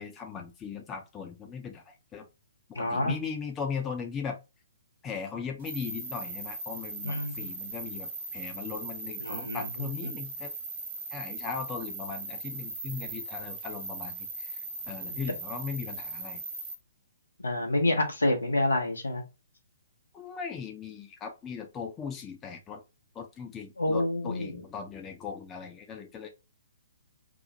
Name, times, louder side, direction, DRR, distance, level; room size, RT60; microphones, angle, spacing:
voice 1, 0.0-2.3 2.7-4.4 5.0-10.5 11.1-14.6 14.9-16.4 20.1-22.8 23.1-26.3, left 6 dB, 15° left, 0.6 m, -38 dB
voice 2, 2.8-3.1 7.0-7.4 9.2-10.1 15.1-15.2 17.4-19.2 23.8-24.5, left 1 dB, 75° left, 0.9 m, -28 dB
sound 1, 5.6-16.7, right 3 dB, 45° right, 1.0 m, -39 dB
3.0 x 2.0 x 3.9 m
figure-of-eight pair, 125°, 0 cm